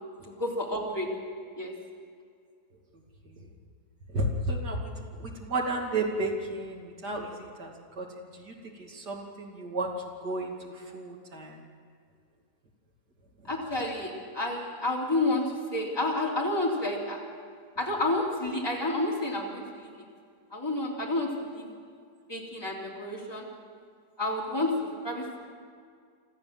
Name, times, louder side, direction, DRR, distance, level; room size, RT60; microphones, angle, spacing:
voice 1, 0.3-1.1 1.6-1.7 13.5-17.2 17.8-19.9 20.5-21.7 22.3-23.5 24.2-25.4, left 2 dB, 15° left, -3 dB, 3.6 m, -30 dB
voice 2, 4.1-4.9 5.2-8.1 8.3-8.5 8.8-9.9 10.2-11.6, right 2 dB, 75° right, 0 dB, 3.2 m, -32 dB
26.0 x 14.0 x 7.7 m, 2.1 s
omnidirectional pair, 1.8 m